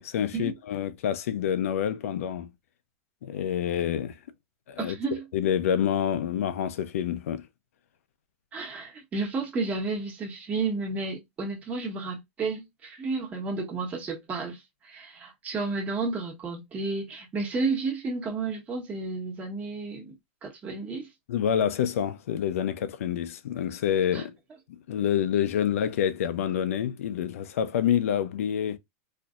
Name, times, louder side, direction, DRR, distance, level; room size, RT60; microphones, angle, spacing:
voice 1, 0.0-2.5 3.2-4.2 4.7-5.0 5.3-7.5 20.7-20.8 21.3-24.4 24.7-28.8, left 9 dB, 90° left, 0.6 m, -27 dB
voice 2, 4.8-5.2 8.5-20.1 20.4-21.1 24.1-24.2, right 3 dB, 20° right, 1.2 m, -32 dB
4.3 x 2.7 x 2.4 m
supercardioid pair, 165°, 7 cm